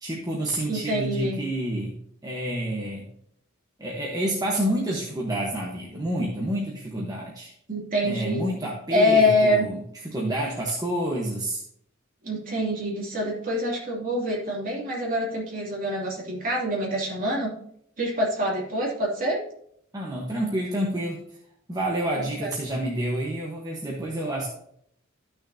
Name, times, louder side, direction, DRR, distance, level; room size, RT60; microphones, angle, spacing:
voice 1, 0.0-2.0 2.2-3.1 3.8-7.5 8.0-11.6 19.9-21.2 21.7-24.5, right 1 dB, 20° right, -4 dB, 1.3 m, -29 dB
voice 2, 0.7-1.4 7.7-8.5 8.9-9.6 12.2-17.5 18.0-19.4 22.2-22.5, left 1 dB, 45° right, -4 dB, 3.0 m, -25 dB
13.5 x 6.3 x 2.8 m, 0.69 s
head